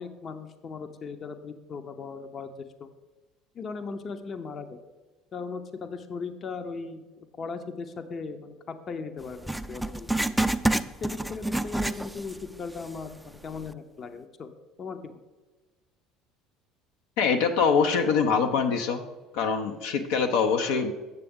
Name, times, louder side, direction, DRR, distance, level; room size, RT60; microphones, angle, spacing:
voice 1, 0.0-2.9 3.5-4.8 5.3-10.1 11.0-14.5 14.8-15.2, left 4 dB, 40° left, 8 dB, 0.7 m, -38 dB
Writing, 9.4-12.4 12.8-12.9 13.6-13.7, right 1 dB, 5° right, 0.4 m, -28 dB
voice 2, 17.2-19.0 19.3-20.9, left 5 dB, 75° left, 5 dB, 0.6 m, -24 dB
8.1 x 6.8 x 3.6 m, 1.2 s
hypercardioid pair, 80°, 0 cm